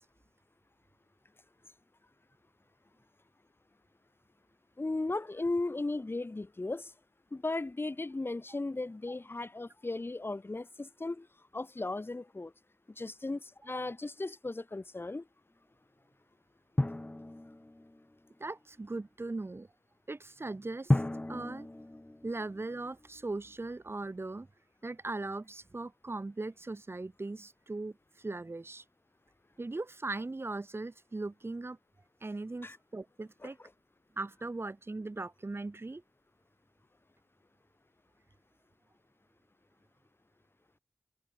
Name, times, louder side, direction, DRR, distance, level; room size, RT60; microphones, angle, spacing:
voice 1, 4.8-6.9 7.3-11.3 11.5-12.5 13.0-15.3 32.6-32.8, left 2 dB, 45° left, 4.0 m, -36 dB
Drum, 16.8-18.3 20.9-23.1, left 1 dB, 25° left, 1.1 m, -33 dB
voice 2, 18.4-19.7 20.1-21.0 21.3-21.7 22.2-24.5 24.8-28.8 29.6-31.8 32.2-33.6 34.2-36.0, right 2 dB, 50° right, 5.9 m, -39 dB
wide cardioid pair, 65°, 5 cm